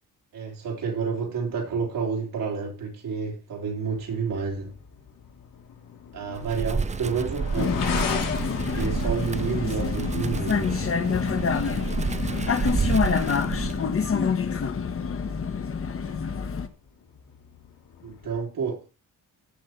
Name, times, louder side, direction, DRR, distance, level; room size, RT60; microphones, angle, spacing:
voice 1, 0.3-4.7 6.1-7.8 8.7-10.8 18.0-18.8, right 5 dB, 85° right, 3.5 m, -29 dB
sound 1, 3.8-18.4, left 7 dB, 80° left, 3.1 m, -40 dB
Wind, 6.3-14.1, right 5 dB, 20° right, 0.5 m, -30 dB
Vehicle, 7.6-16.7, left 6 dB, 40° left, 1.3 m, -27 dB
15.5 x 5.7 x 4.5 m
cardioid pair, 120°, 33 cm